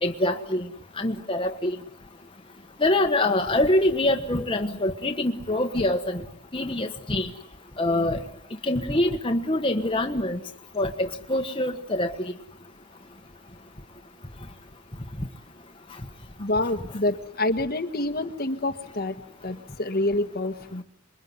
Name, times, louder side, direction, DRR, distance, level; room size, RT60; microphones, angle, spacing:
voice 1, 0.0-0.7 1.0-1.8 2.8-6.2 6.5-7.3 7.8-8.2 8.6-10.4 10.7-12.3 15.2-15.3, left 1 dB, 25° left, 1.4 m, -25 dB
voice 2, 16.4-19.2 19.4-20.8, left 2 dB, 40° left, 1.4 m, -27 dB
27.5 x 22.5 x 9.6 m
head